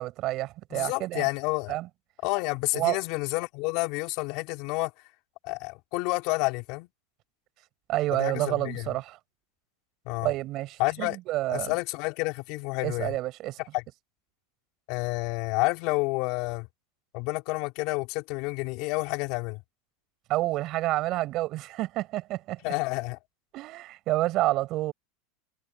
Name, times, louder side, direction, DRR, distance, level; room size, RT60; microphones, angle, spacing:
voice 1, 0.0-1.3 1.7-1.9 2.7-3.0 7.9-9.2 10.2-11.7 12.8-13.6 20.3-22.7 23.5-24.9, right 17 dB, 50° right, 6.5 m, -29 dB
voice 2, 0.7-1.7 2.2-4.9 5.4-6.9 8.1-8.9 10.1-10.3 10.8-11.2 11.5-13.1 13.7-13.8 14.9-16.7 17.1-19.6 22.6-23.2, left 25 dB, 60° left, 3.7 m, -29 dB
hypercardioid pair, 110°, 0 cm